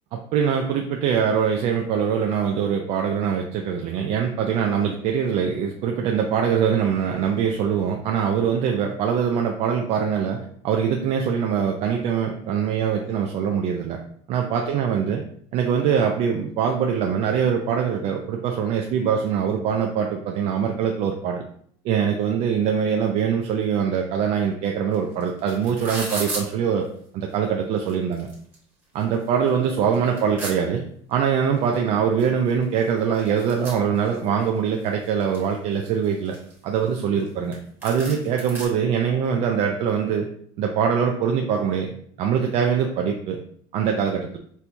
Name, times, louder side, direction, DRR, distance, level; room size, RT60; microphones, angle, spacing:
voice 1, 0.1-10.4 10.6-14.0 14.3-15.2 15.5-21.4 21.8-26.9 27.1-28.3 28.9-30.8 31.1-36.4 36.6-37.6 37.8-40.3 40.6-41.9 42.2-43.4 43.7-44.4, right 7 dB, 45° right, 2 dB, 0.4 m, -23 dB
sound 1, 24.9-25.0 25.2-26.4 27.3-27.4 27.8-28.6 29.0-29.1 29.5-30.5 31.7-31.8 32.2-32.3 32.5-34.4 34.9-35.5 36.0-37.3 37.5-37.6 37.8-38.7, right 2 dB, 15° right, 1.1 m, -34 dB
4.4 x 2.2 x 2.6 m, 0.62 s
cardioid pair, 140°, 15 cm